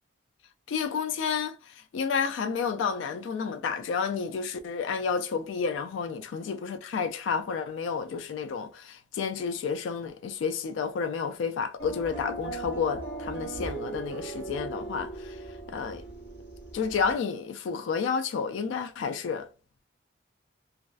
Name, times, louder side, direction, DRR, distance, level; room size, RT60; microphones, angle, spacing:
voice 1, 0.7-16.0 16.7-19.5, left 6 dB, 85° left, 0.3 m, -31 dB
sound 1, 11.8-17.1, right 3 dB, 50° left, 1.2 m, -38 dB
2.3 x 2.2 x 2.4 m
head